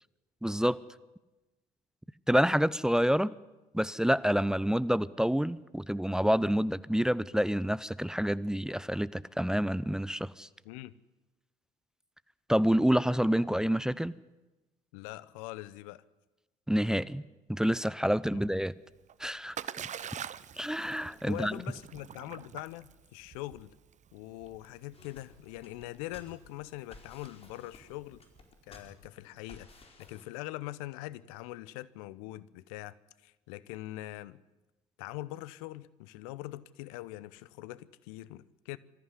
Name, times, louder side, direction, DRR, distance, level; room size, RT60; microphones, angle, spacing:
voice 1, 0.4-0.8 2.3-3.3 3.7-10.5 12.5-14.1 16.7-17.2 17.5-18.7 19.2-19.6 20.6-21.6, equal, 5° right, 18 dB, 0.7 m, -28 dB
voice 2, 14.9-16.0 18.3-18.4 21.2-23.7 24.1-28.2 28.7-33.0 33.2-34.4 35.0-38.8, left 17 dB, 70° left, 19 dB, 0.8 m, -43 dB
Splash splatter, 18.9-28.7, right 9 dB, 40° right, 0.9 m, -46 dB
sound 1, 24.9-30.2, left 2 dB, 35° left, 4.5 m, -55 dB
24.5 x 14.5 x 9.9 m, 1.1 s
hypercardioid pair, 55°, 19 cm